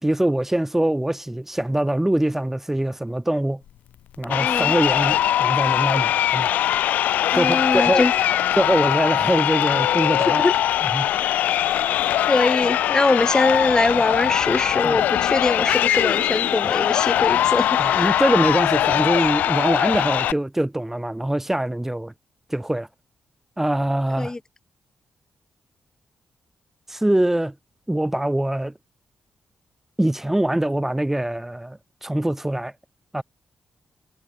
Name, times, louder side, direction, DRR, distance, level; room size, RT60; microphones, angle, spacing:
voice 1, 0.0-3.6 4.2-6.5 7.3-8.1 8.6-10.5 10.9-11.1 14.8-15.0 17.8-22.1 22.5-22.9 23.6-24.3 26.9-27.5 27.9-28.7 30.0-32.7 33.1-33.2, right 1 dB, 10° right, 4.2 m, -23 dB
Crowd, 4.2-20.3, left 12 dB, 85° left, 6.0 m, -21 dB
voice 2, 4.4-4.7 7.3-8.1 10.4-10.5 11.2-11.3 12.3-18.2 24.2-24.4, left 2 dB, 25° left, 5.9 m, -22 dB
supercardioid pair, 55°, 3 cm